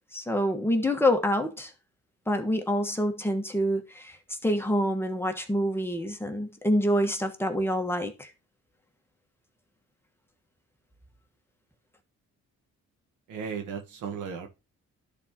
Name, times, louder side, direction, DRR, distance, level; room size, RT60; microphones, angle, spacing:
voice 1, 0.1-1.7 2.3-4.2 4.4-8.3, equal, 10° left, 1.3 m, -26 dB
voice 2, 13.3-14.5, right 6 dB, 90° right, 1.4 m, -35 dB
12.5 x 4.2 x 2.9 m
cardioid pair, 90°, 30 cm